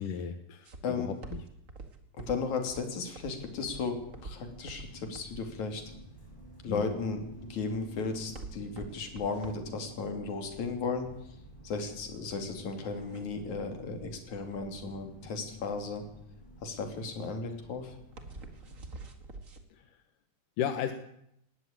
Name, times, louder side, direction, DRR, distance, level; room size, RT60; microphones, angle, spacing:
voice 1, 0.0-0.7 1.0-1.4 6.7-6.9 19.7-19.9 20.6-20.9, left 9 dB, 85° left, 7 dB, 2.7 m, -34 dB
sound 1, 0.6-19.6, right 3 dB, 30° right, 1.9 m, -48 dB
voice 2, 2.2-5.8 6.6-7.2 7.5-11.1 11.6-16.0 16.6-18.0, left 4 dB, 65° left, 5 dB, 4.1 m, -35 dB
sound 2, 2.9-19.5, equal, 15° left, 8.1 m, -52 dB
19.5 x 16.0 x 8.8 m, 0.78 s
omnidirectional pair, 3.6 m